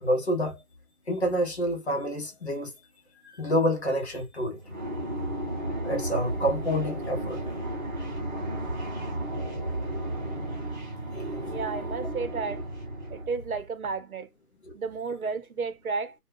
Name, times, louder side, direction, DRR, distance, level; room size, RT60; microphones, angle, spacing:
voice 1, 0.0-0.6 1.1-2.7 3.2-4.6 5.8-7.4 14.7-14.8, equal, 45° left, 0.8 m, -28 dB
sound 1, 4.6-13.6, right 1 dB, 30° right, 0.9 m, -33 dB
voice 2, 11.5-12.6 13.1-14.3 14.7-16.1, right 4 dB, 65° right, 0.8 m, -32 dB
2.3 x 2.1 x 3.4 m
hypercardioid pair, 170°, 46 cm